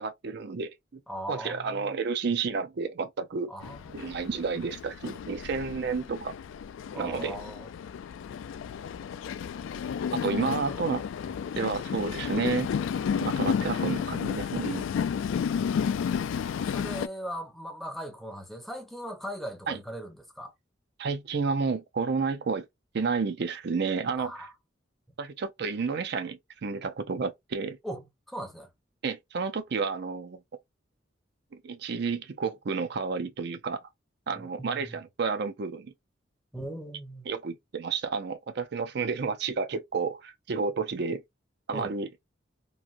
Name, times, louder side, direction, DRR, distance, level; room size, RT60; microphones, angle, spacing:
voice 1, 0.0-1.0 1.3-3.5 3.9-6.3 7.0-7.4 10.2-11.0 11.6-12.7 13.2-14.9 19.7-19.8 21.0-22.7 22.9-24.3 25.2-27.8 29.0-30.4 31.6-33.8 34.3-35.9 37.3-41.2 41.7-42.1, right 5 dB, 60° right, 0.5 m, -31 dB
voice 2, 1.1-2.0 3.5-4.2 6.9-7.7 10.5-10.9 11.2-11.4 16.7-20.5 24.2-24.5 27.8-28.7 34.3-35.0 36.5-37.3 41.7-41.9, equal, ahead, 0.6 m, -39 dB
Train, 3.6-17.1, left 7 dB, 85° left, 0.3 m, -32 dB
3.1 x 2.5 x 2.4 m
head